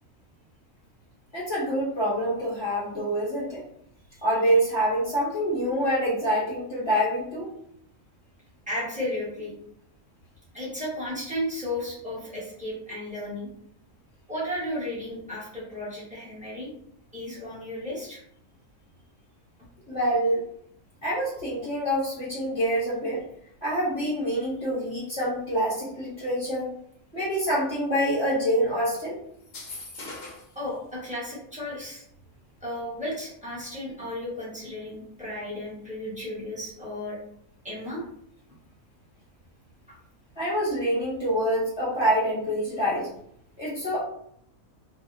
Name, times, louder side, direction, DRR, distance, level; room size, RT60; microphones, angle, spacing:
voice 1, 1.3-3.6 4.2-7.5 19.9-20.4 21.0-23.2 23.6-26.7 27.1-29.2 40.4-43.1 43.6-44.0, equal, 25° left, -8 dB, 0.7 m, -26 dB
voice 2, 8.7-9.5 10.5-13.5 14.3-16.7 17.1-18.2 30.5-32.0 32.6-37.2 37.6-38.0, left 1 dB, 5° right, -7 dB, 0.9 m, -34 dB
sound 1, 29.4-30.6, left 2 dB, 55° left, 0.8 m, -40 dB
2.7 x 2.2 x 2.4 m, 0.68 s
omnidirectional pair, 1.4 m